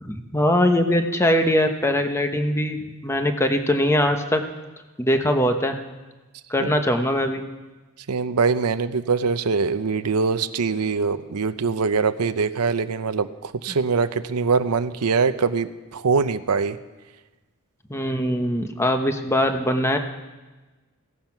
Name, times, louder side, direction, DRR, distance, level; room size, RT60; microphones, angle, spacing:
voice 1, 0.0-4.4 5.0-5.8 6.5-7.4 13.7-13.8 17.9-20.0, left 1 dB, 10° left, 6 dB, 1.0 m, -21 dB
voice 2, 8.1-16.8, right 5 dB, 90° right, 10 dB, 0.7 m, -23 dB
16.5 x 14.5 x 6.0 m, 1.2 s
head